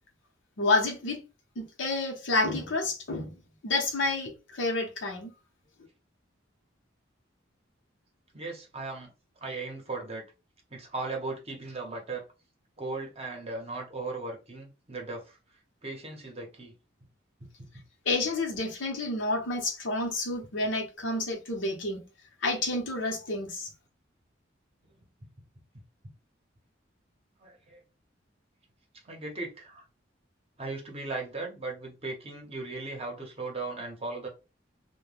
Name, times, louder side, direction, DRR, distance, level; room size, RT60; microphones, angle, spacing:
voice 1, 0.6-1.2 1.6-3.3 3.6-5.3 18.1-22.1 22.4-23.7, left 2 dB, 75° left, 0.8 m, -29 dB
voice 2, 8.3-9.1 9.4-10.2 10.7-12.2 12.8-15.4 15.8-16.7 17.6-17.7 27.4-27.8 29.0-29.8 30.6-34.3, right 3 dB, 30° right, 0.7 m, -37 dB
2.2 x 2.1 x 3.2 m
head